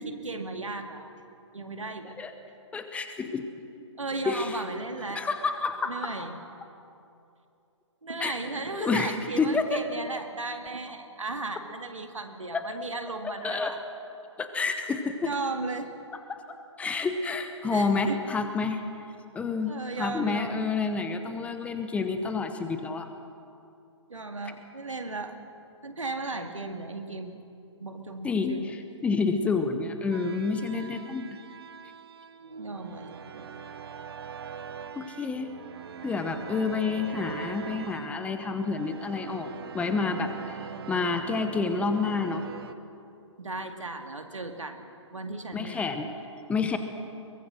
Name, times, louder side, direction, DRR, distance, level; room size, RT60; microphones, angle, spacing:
voice 1, 0.2-1.1 1.5-2.2 4.0-5.3 5.9-6.4 8.0-13.8 15.2-15.9 17.7-18.2 19.7-20.6 24.1-25.4 25.8-27.4 27.8-28.7 32.4-33.6 43.4-44.8 45.1-45.9, right 3 dB, 80° right, 6 dB, 2.2 m, -35 dB
voice 2, 2.7-3.5 4.2-4.6 5.1-5.9 8.2-8.4 8.8-9.8 12.5-12.7 13.4-13.7 14.4-15.3 16.3-16.4 16.8-18.8 19.3-19.7 20.0-23.1 28.2-31.4 35.0-35.5 36.0-42.4 45.5-46.1 46.5-46.8, left 4 dB, 10° left, 7 dB, 1.0 m, -29 dB
sound 1, 30.1-42.7, right 7 dB, 50° right, 1.0 m, -42 dB
23.0 x 21.0 x 6.4 m, 2.7 s
figure-of-eight pair, 135°, 16 cm